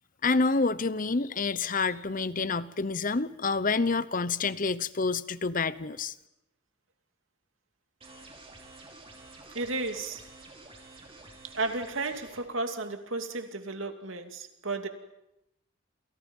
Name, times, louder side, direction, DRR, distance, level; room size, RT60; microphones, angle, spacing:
voice 1, 0.2-6.1, left 4 dB, 40° left, 16 dB, 0.8 m, -28 dB
sound 1, 8.0-12.4, right 2 dB, 25° right, 5.3 m, -50 dB
voice 2, 9.5-10.2 11.4-14.9, right 3 dB, 70° right, 6 dB, 2.6 m, -33 dB
29.5 x 28.0 x 5.5 m, 0.87 s
head